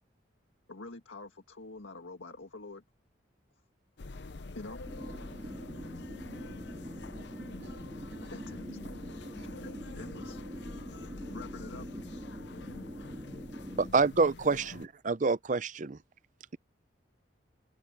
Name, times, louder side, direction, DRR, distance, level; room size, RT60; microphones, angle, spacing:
voice 1, 0.7-2.8 4.6-4.8 8.3-8.7 10.0-10.4 10.8-11.0 11.3-11.9, left 3 dB, 90° left, 1.8 m, -46 dB
sound 1, 4.0-14.9, left 3 dB, 65° left, 0.7 m, -46 dB
sound 2, 4.8-13.9, equal, 20° right, 2.7 m, -44 dB
voice 2, 5.1-5.5 7.6-8.4 9.1-9.6 14.2-14.9, right 2 dB, 85° right, 7.1 m, -61 dB
voice 3, 13.8-14.6 15.1-16.0, right 4 dB, 40° right, 0.5 m, -26 dB
head